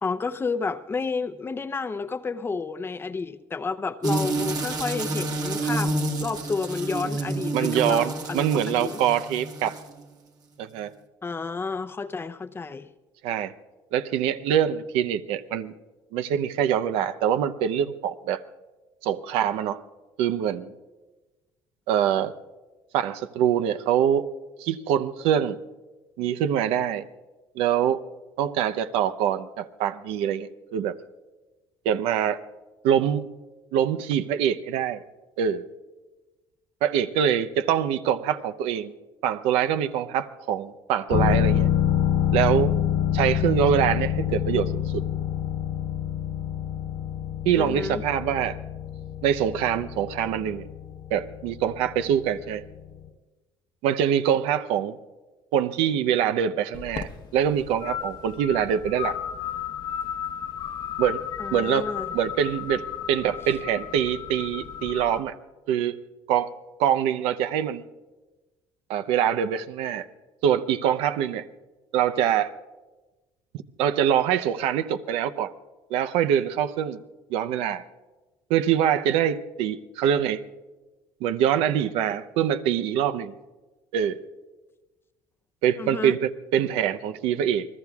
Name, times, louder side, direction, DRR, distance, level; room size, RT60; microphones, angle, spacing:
voice 1, 0.0-5.9 6.2-9.0 11.2-12.9 47.6-48.0 61.4-62.1 85.8-86.2, left 4 dB, 25° left, 10 dB, 0.7 m, -31 dB
sound 1, 4.0-10.0, right 2 dB, 40° right, 1.7 m, -29 dB
voice 2, 7.5-9.8 10.6-10.9 13.2-13.5 13.9-15.7 16.1-18.4 19.0-19.8 20.2-20.7 21.9-22.3 22.9-24.3 24.6-25.6 26.2-27.1 27.6-28.0 28.4-30.9 31.8-32.4 32.8-33.3 33.7-35.0 35.4-35.6 36.8-38.9 39.2-41.7 42.3-42.7 43.1-45.0 47.4-48.6 49.2-50.7 51.1-52.6 53.8-55.0 55.5-59.2 61.0-61.2 61.5-61.9 62.1-65.4 65.7-66.0 66.3-66.5 66.8-67.8 68.9-70.1 70.4-71.4 71.9-72.5 73.8-75.5 75.9-77.0 77.3-77.8 78.5-80.4 81.2-83.3 83.9-84.2 85.6-87.7, right 9 dB, 85° right, 11 dB, 0.7 m, -24 dB
sound 2, 41.1-52.7 53.0-53.1, left 11 dB, 90° left, 2.9 m, -26 dB
sound 3, 56.7-65.2, left 9 dB, 50° left, 1.1 m, -34 dB
28.5 x 19.5 x 2.4 m, 1.2 s
cardioid pair, 105°, 10 cm